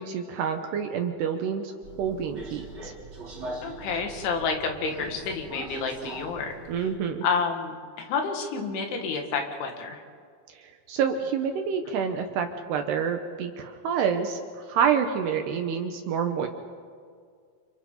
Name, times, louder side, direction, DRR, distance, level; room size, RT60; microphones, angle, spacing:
voice 1, 0.0-1.7 2.0-2.9 6.7-7.2 10.5-16.5, right 7 dB, 70° right, 5 dB, 2.7 m, -28 dB
Subway metro underground, 1.8-7.0, right 2 dB, 25° right, 4.0 m, -41 dB
voice 2, 3.6-6.5 7.2-10.0, left 5 dB, 75° left, 3 dB, 4.3 m, -29 dB
29.5 x 27.5 x 3.9 m, 2.1 s
omnidirectional pair, 5.6 m